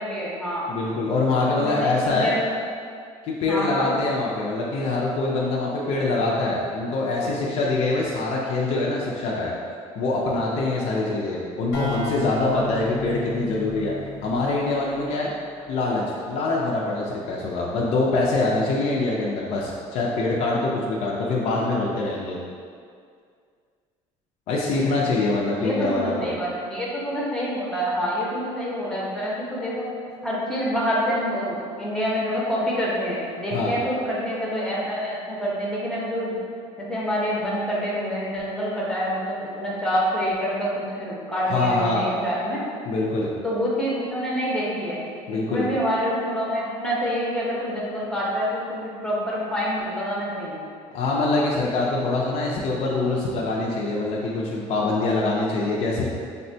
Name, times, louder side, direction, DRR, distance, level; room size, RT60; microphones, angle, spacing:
voice 1, 0.0-0.7 1.4-2.4 3.5-3.9 25.5-29.8 30.2-36.4 36.8-42.6 43.4-45.0 45.3-50.7, equal, 5° left, -6 dB, 0.6 m, -27 dB
voice 2, 0.7-2.4 3.2-9.5 10.0-13.9 14.2-15.3 15.7-22.4 24.5-26.3 33.5-33.7 41.5-42.1 42.9-43.3 45.3-45.7 50.9-56.1, left 2 dB, 55° left, -4 dB, 0.4 m, -24 dB
sound 1, 11.7-15.4, left 2 dB, 75° left, 0.8 m, -34 dB
3.5 x 2.1 x 2.6 m, 2.2 s
cardioid pair, 130°, 13 cm